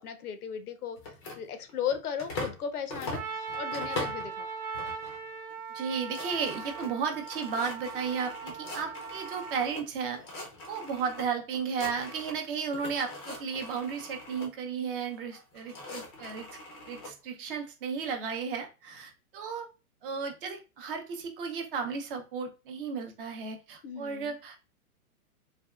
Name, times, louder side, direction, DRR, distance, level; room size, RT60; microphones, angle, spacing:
voice 1, 0.0-4.5 23.8-24.4, left 8 dB, 80° left, 9 dB, 0.6 m, -36 dB
sound 1, 1.0-2.6 2.9-4.3 4.7-5.2 5.5-5.6 5.8-9.8 10.1-11.2 11.5-12.5 12.7-14.5 15.3-17.1, left 2 dB, 20° left, 0.4 m, -41 dB
Trumpet, 3.1-9.7, right 5 dB, 75° right, 0.9 m, -39 dB
voice 2, 5.7-10.2 10.7-16.4 16.9-19.6 20.0-24.7, right 6 dB, 40° right, 4 dB, 0.6 m, -34 dB
3.4 x 2.2 x 2.2 m, 0.30 s
hypercardioid pair, 130°, 45 cm